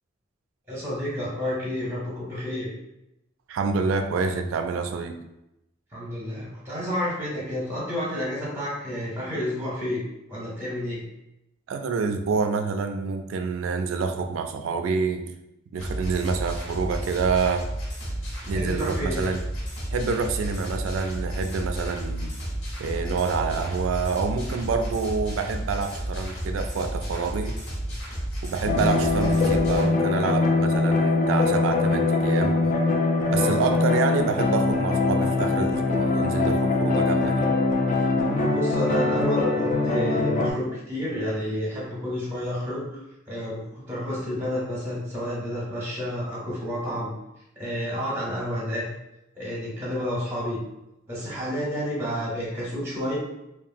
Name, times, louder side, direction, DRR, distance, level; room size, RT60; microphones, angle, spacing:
voice 1, 0.7-2.7 5.9-10.0 10.3-11.0 18.5-19.2 33.3-33.6 38.4-43.0 43.3-47.1 47.6-48.8 49.4-50.6 51.1-53.1, equal, 10° right, -5 dB, 0.7 m, -30 dB
voice 2, 3.5-5.2 11.7-15.3 15.7-17.7 18.5-19.4 19.9-22.3 22.8-27.6 28.4-32.6 33.3-37.5, right 5 dB, 90° right, 7 dB, 0.3 m, -27 dB
sound 1, 15.8-29.8, right 1 dB, 80° left, 1.0 m, -32 dB
sound 2, 28.6-40.5, left 3 dB, 40° left, 0.3 m, -22 dB
2.9 x 2.3 x 2.5 m, 0.88 s
head